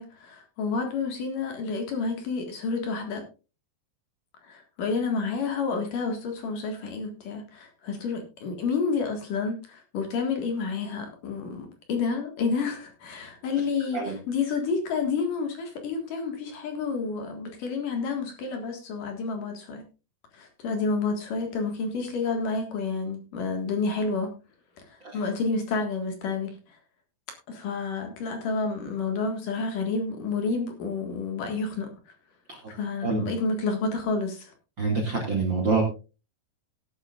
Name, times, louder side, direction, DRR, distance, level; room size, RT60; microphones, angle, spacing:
voice 1, 0.0-3.2 4.4-19.8 20.3-24.3 24.8-26.8 27.5-31.9 32.7-34.5, left 4 dB, 60° left, 4 dB, 3.0 m, -30 dB
voice 2, 34.8-35.8, right 4 dB, 40° right, 3 dB, 2.0 m, -26 dB
17.5 x 10.0 x 2.4 m, 0.31 s
omnidirectional pair, 4.8 m